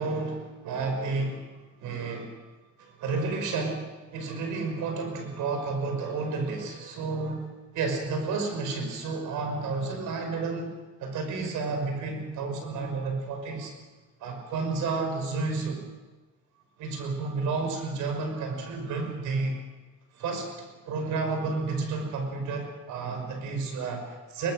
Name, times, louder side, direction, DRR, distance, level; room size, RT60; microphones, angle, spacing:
voice 1, 0.0-1.5 1.8-2.4 2.8-10.7 11.0-13.7 14.2-15.8 16.8-19.6 20.1-24.5, right 4 dB, 90° right, 4 dB, 5.8 m, -31 dB
23.5 x 21.0 x 6.5 m, 1.2 s
cardioid pair, 90°, 30 cm